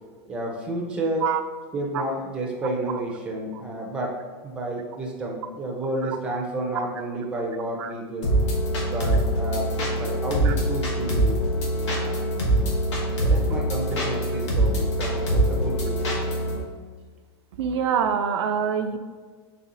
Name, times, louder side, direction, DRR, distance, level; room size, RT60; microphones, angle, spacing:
voice 1, 0.3-1.3 1.7-8.3 8.8-11.4 12.0-12.3 13.2-16.1, right 1 dB, 5° right, -1 dB, 0.5 m, -31 dB
sound 1, 8.2-16.6, right 1 dB, 85° left, 1.3 m, -24 dB
voice 2, 17.6-19.0, right 7 dB, 75° right, 8 dB, 0.4 m, -25 dB
4.2 x 3.2 x 3.7 m, 1.5 s
supercardioid pair, 170°, 15 cm